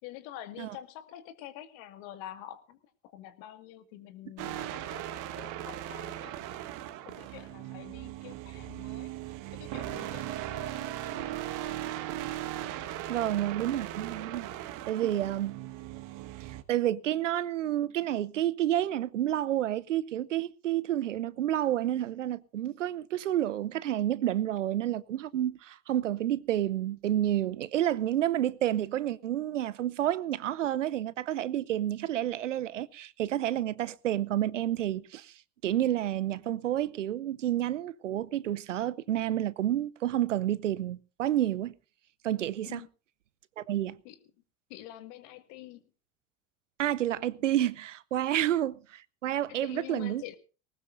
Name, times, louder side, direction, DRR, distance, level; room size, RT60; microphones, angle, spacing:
voice 1, 0.0-2.8 3.0-5.1 5.3-6.6 7.1-9.1 9.5-11.3 42.6-42.9 44.0-44.2 44.7-45.8 49.5-50.3, left 13 dB, 65° left, 2.0 m, -46 dB
sound 1, 4.4-16.6, right 13 dB, 55° right, 1.5 m, -38 dB
voice 2, 13.1-15.6 16.4-35.3 35.6-41.7 42.2-42.8 43.6-44.0 46.8-50.2, right 12 dB, 85° right, 0.7 m, -30 dB
20.0 x 18.5 x 2.6 m
hypercardioid pair, 65°, 36 cm